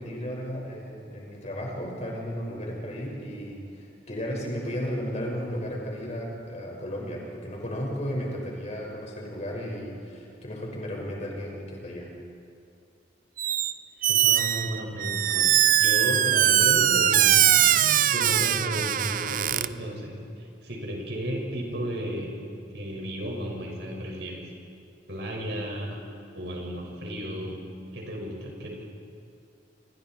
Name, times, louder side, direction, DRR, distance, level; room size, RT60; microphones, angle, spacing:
voice 1, 0.0-12.1, equal, 40° left, -1 dB, 5.8 m, -34 dB
Squeak, 13.4-13.7 14.0-19.7, right 11 dB, 50° right, 0.5 m, -21 dB
voice 2, 14.1-22.3 22.7-24.4 25.1-26.0 26.3-27.6 27.9-28.8, equal, 70° right, -1 dB, 6.0 m, -34 dB
30.0 x 26.5 x 4.6 m, 2.5 s
head